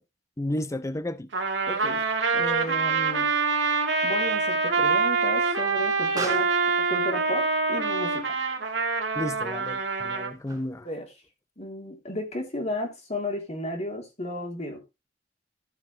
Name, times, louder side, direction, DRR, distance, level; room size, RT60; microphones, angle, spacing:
voice 1, 0.4-1.3 9.1-10.9, left 1 dB, 15° left, 0.6 m, -32 dB
Trumpet, 1.3-10.3, right 4 dB, 90° right, 1.8 m, -25 dB
voice 2, 1.7-2.0 2.3-3.3 4.0-6.5 6.9-8.3 10.8-11.0 11.6-14.8, left 1 dB, 40° left, 3.3 m, -33 dB
Explosion, 2.3-11.0, right 2 dB, 20° right, 3.2 m, -44 dB
14.5 x 5.9 x 3.3 m
head